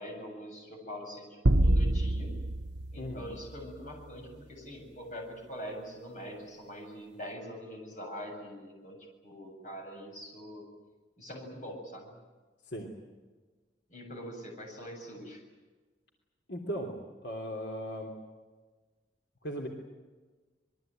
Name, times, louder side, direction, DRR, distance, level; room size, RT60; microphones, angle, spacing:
voice 1, 0.0-2.3 2.9-9.0 9.2-10.7 11.2-12.1 13.9-15.4, equal, 45° left, 2 dB, 7.6 m, -43 dB
sound 1, 1.5-4.0, right 1 dB, 85° right, 1.1 m, -27 dB
voice 2, 3.0-3.3 12.7-12.9 16.5-16.9 17.2-18.1 19.4-19.7, equal, 75° left, 2 dB, 3.1 m, -37 dB
26.0 x 22.0 x 9.2 m, 1.3 s
head